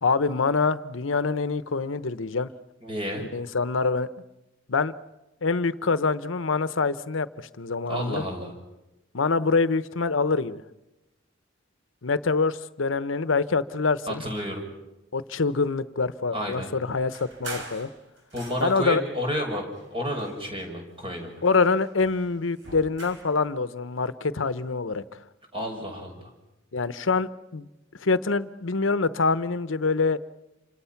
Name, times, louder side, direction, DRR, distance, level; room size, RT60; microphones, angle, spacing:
voice 1, 0.0-2.5 3.2-4.1 4.7-4.9 5.4-8.2 9.1-10.6 12.0-14.2 15.1-17.9 18.6-19.0 21.4-25.2 26.7-27.7 28.0-30.2, left 4 dB, 90° left, 14 dB, 0.9 m, -25 dB
voice 2, 2.8-3.2 7.9-8.5 14.1-14.7 16.3-16.7 18.3-21.4 25.5-26.3, equal, 30° right, 2 dB, 6.1 m, -31 dB
sound 1, 17.1-19.0 19.7-20.8 21.2-23.4, right 2 dB, 65° right, 4.9 m, -43 dB
28.5 x 26.0 x 5.9 m, 0.99 s
head